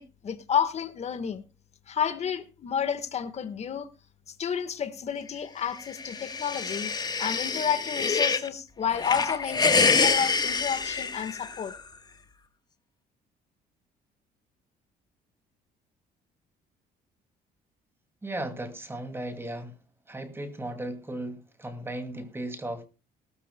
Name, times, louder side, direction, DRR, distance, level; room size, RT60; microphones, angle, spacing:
voice 1, 0.0-1.4 1.9-3.9 4.4-6.9 7.2-11.7, left 7 dB, 40° left, 1.4 m, -30 dB
sound 1, 5.8-8.5 8.9-11.8, left 4 dB, 25° left, 1.2 m, -26 dB
voice 2, 18.2-19.8 20.1-22.8, right 1 dB, 15° right, 2.3 m, -36 dB
18.0 x 13.5 x 2.2 m
cardioid pair, 110°, 17 cm